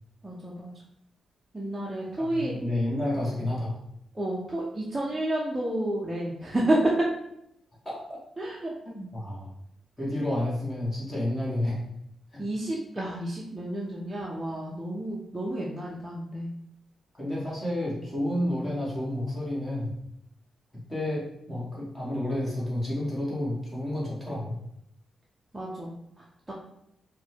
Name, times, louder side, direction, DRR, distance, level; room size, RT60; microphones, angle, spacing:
voice 1, 0.2-0.7 1.5-2.6 4.1-7.1 8.4-8.7 12.4-16.5 25.5-25.9 26.5-26.6, right 1 dB, 10° right, -4 dB, 0.5 m, -30 dB
voice 2, 2.2-3.7 7.8-8.2 8.8-9.5 10.0-11.8 12.3-12.4 17.2-19.9 20.9-24.6, left 1 dB, 10° left, -6 dB, 1.3 m, -30 dB
4.3 x 2.2 x 4.4 m, 0.78 s
wide cardioid pair, 175°, 0 cm